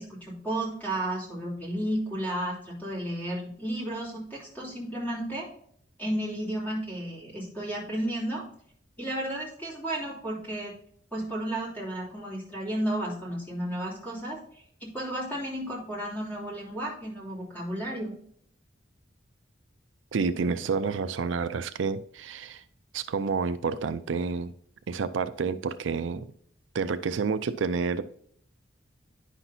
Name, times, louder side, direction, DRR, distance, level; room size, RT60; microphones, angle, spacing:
voice 1, 0.0-5.5 6.0-8.4 9.0-10.7 11.1-18.1, right 1 dB, 10° left, 3.1 m, -33 dB
voice 2, 20.1-22.6 22.9-24.5 24.9-26.3 26.7-28.1, right 5 dB, 85° right, 0.5 m, -29 dB
9.9 x 5.8 x 2.7 m
head